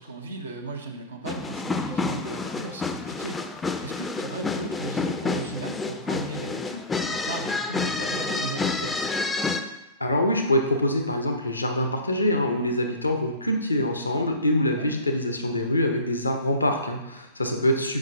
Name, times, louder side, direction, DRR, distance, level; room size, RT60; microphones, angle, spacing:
voice 1, 0.0-9.2 14.8-14.9, right 3 dB, 75° right, 1 dB, 0.7 m, -36 dB
sound 1, 1.3-9.6, left 4 dB, 15° left, 0.4 m, -29 dB
voice 2, 10.0-18.0, left 1 dB, 80° left, 4 dB, 0.7 m, -24 dB
7.3 x 5.6 x 2.6 m, 0.94 s
figure-of-eight pair, 90°, 0 cm